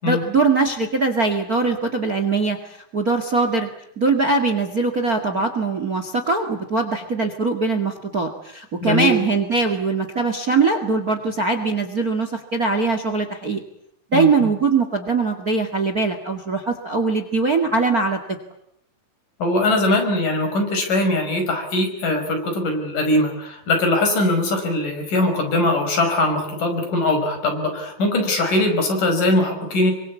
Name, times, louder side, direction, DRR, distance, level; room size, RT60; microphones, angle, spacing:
voice 1, 0.0-3.7 4.0-13.6 14.1-18.2, right 4 dB, 30° right, 8 dB, 2.0 m, -21 dB
voice 2, 8.8-9.2 14.1-14.5 19.4-29.9, left 1 dB, 65° left, 5 dB, 7.0 m, -21 dB
26.5 x 24.5 x 8.5 m, 0.73 s
omnidirectional pair, 4.1 m